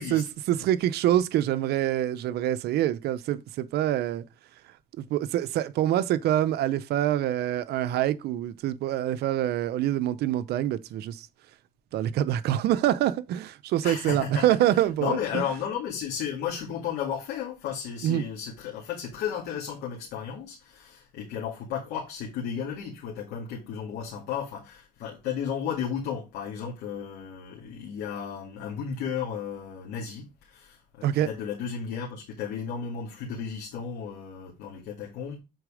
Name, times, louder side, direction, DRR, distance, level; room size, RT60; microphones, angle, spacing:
voice 1, 0.1-4.2 5.0-11.3 11.9-15.4 18.0-18.2 31.0-31.3, right 12 dB, 75° right, 0.6 m, -25 dB
voice 2, 13.8-14.4 14.7-35.4, left 7 dB, 85° left, 2.3 m, -34 dB
8.0 x 4.2 x 5.0 m
cardioid pair, 110°, 17 cm